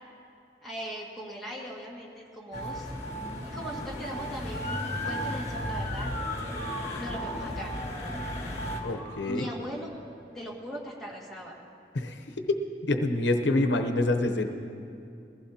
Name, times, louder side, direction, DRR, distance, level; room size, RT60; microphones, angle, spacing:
voice 1, 0.6-2.9 3.4-6.1 7.0-7.7 9.2-9.9 10.3-11.5, equal, ahead, -6 dB, 2.0 m, -39 dB
sound 1, 2.5-8.8, equal, 40° left, 1.6 m, -35 dB
Motor vehicle (road) / Siren, 4.5-9.8, left 3 dB, 15° left, 1.3 m, -40 dB
voice 2, 8.8-9.5 11.9-12.2 12.9-14.5, left 2 dB, 90° left, 6 dB, 0.8 m, -26 dB
21.5 x 15.5 x 2.9 m, 2.6 s
head